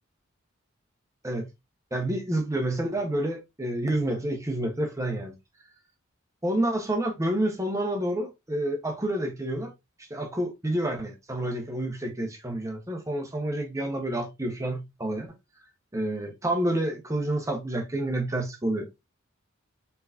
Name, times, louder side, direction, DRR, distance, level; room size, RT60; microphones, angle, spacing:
voice 1, 1.9-5.3 6.4-9.7 10.1-15.3 15.9-18.9, right 1 dB, 15° right, 1.1 m, -29 dB
4.6 x 3.9 x 2.7 m
head